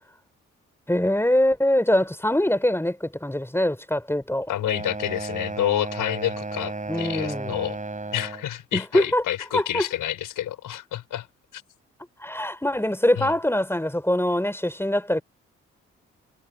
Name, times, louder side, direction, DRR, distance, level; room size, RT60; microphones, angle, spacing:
voice 1, 0.9-4.5 6.9-7.6 8.7-9.2 9.5-9.9 12.2-15.2, left 1 dB, 5° left, 4.6 m, -23 dB
voice 2, 4.5-7.8 8.1-11.3 11.5-11.6 13.2-13.3, left 12 dB, 70° left, 4.6 m, -29 dB
sound 1, 4.6-8.5, right 3 dB, 20° right, 5.0 m, -33 dB
hypercardioid pair, 40°, 33 cm